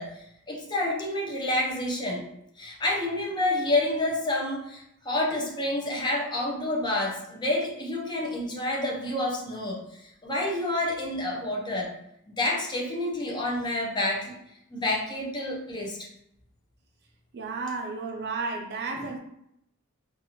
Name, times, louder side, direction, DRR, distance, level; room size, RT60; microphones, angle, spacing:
voice 1, 0.0-2.3 2.6-11.9 12.3-14.4 14.7-16.0 18.9-19.0, left 1 dB, 20° left, -2 dB, 0.5 m, -29 dB
voice 2, 17.3-19.2, right 4 dB, 50° right, 2 dB, 0.4 m, -32 dB
2.6 x 2.4 x 2.8 m, 0.79 s
head